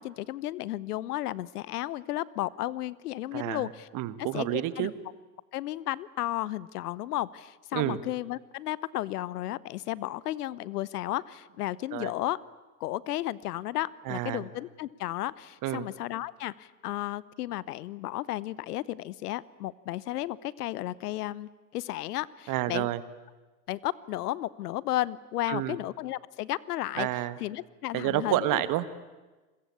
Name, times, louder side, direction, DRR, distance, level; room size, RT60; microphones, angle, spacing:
voice 1, 0.0-3.9 4.3-4.9 5.5-12.4 12.8-22.9 23.7-27.1 27.4-28.6, left 15 dB, 70° left, 21 dB, 1.0 m, -33 dB
voice 2, 3.3-4.9 7.7-8.0 11.9-12.1 14.0-14.4 15.6-15.9 22.5-23.0 25.5-25.8 27.0-27.4 27.9-29.0, right 14 dB, 40° right, 14 dB, 1.7 m, -29 dB
29.0 x 22.5 x 8.5 m, 1.2 s
hypercardioid pair, 100°, 48 cm